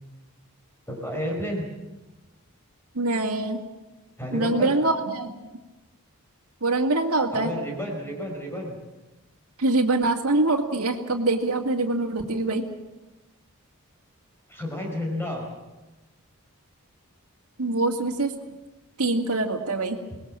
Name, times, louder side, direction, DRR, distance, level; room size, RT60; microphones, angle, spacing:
voice 1, 0.9-1.7 4.2-4.7 7.3-8.8 14.5-15.4, left 1 dB, 10° left, 0 dB, 5.0 m, -31 dB
voice 2, 3.0-3.6 4.3-5.3 6.6-7.5 9.6-12.7 17.6-18.3 19.0-20.0, right 2 dB, 80° right, 0 dB, 2.3 m, -24 dB
26.0 x 20.0 x 7.6 m, 1.1 s
head